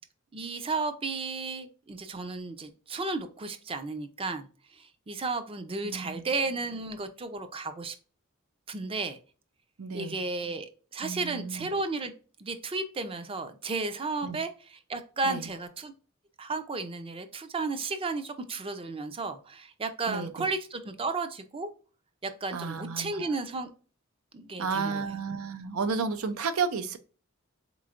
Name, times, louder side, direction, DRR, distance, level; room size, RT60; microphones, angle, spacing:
voice 1, 0.3-7.9 8.7-9.2 9.9-12.1 12.4-15.9 16.4-21.7 22.2-23.7 24.3-25.1, right 3 dB, 25° right, 9 dB, 0.5 m, -33 dB
voice 2, 5.8-6.2 9.8-10.2 11.0-11.7 14.2-14.4 15.2-15.5 20.1-20.5 22.5-23.3 24.6-27.0, right 5 dB, 85° right, 9 dB, 0.6 m, -32 dB
4.2 x 3.1 x 2.4 m, 0.38 s
head